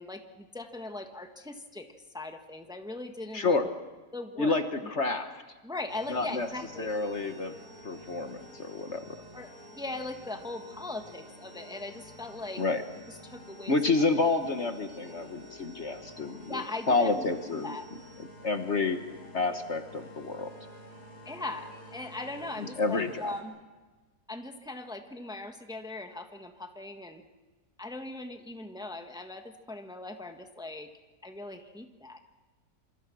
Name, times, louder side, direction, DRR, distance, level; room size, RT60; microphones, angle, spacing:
voice 1, 0.0-1.9 2.1-3.7 4.1-4.5 5.6-6.9 9.3-12.6 13.2-13.7 16.5-17.9 21.2-23.5 24.3-27.2 27.8-30.9 31.2-32.2, left 2 dB, 5° right, 5 dB, 1.4 m, -39 dB
voice 2, 3.3-3.7 4.4-5.3 6.1-6.5 6.8-7.5 7.8-9.0 12.6-12.8 13.7-17.7 18.4-19.0 19.3-20.5 22.6-23.2, left 3 dB, 50° left, 7 dB, 1.4 m, -29 dB
sound 1, 5.9-23.4, equal, 85° left, 5.6 m, -50 dB
27.0 x 26.0 x 6.2 m, 1.3 s
omnidirectional pair, 1.7 m